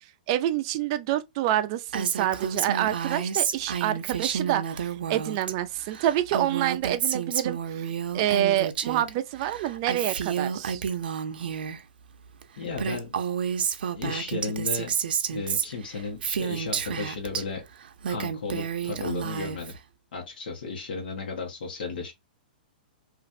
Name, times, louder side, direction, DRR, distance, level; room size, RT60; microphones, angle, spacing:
voice 1, 0.3-10.8, right 12 dB, 30° right, 0.3 m, -27 dB
Female speech woman speaking, 1.9-5.5 5.8-9.1 9.4-11.8 12.4-12.5 12.7-17.4 17.8-19.8, right 7 dB, 90° right, 0.5 m, -30 dB
voice 2, 12.6-13.1 13.9-14.9 15.3-17.6 18.1-19.7 20.1-22.1, left 4 dB, 70° left, 1.2 m, -34 dB
3.0 x 2.5 x 2.5 m
hypercardioid pair, 165°, 5 cm